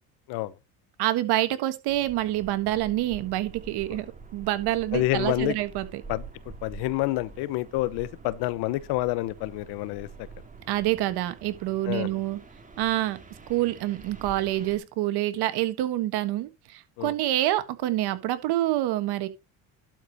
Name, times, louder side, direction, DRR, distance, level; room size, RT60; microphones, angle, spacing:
voice 1, 1.0-4.1 4.3-6.0 10.7-12.4 12.8-13.2 13.5-19.3, right 15 dB, 70° right, 1.5 m, -27 dB
sound 1, 1.9-14.8, right 4 dB, 20° right, 2.2 m, -46 dB
voice 2, 4.9-5.6 6.1-6.2 6.6-10.3 11.9-12.1 17.0-17.1, left 17 dB, 75° left, 0.9 m, -28 dB
12.0 x 4.9 x 4.0 m
supercardioid pair, 95°, 40 cm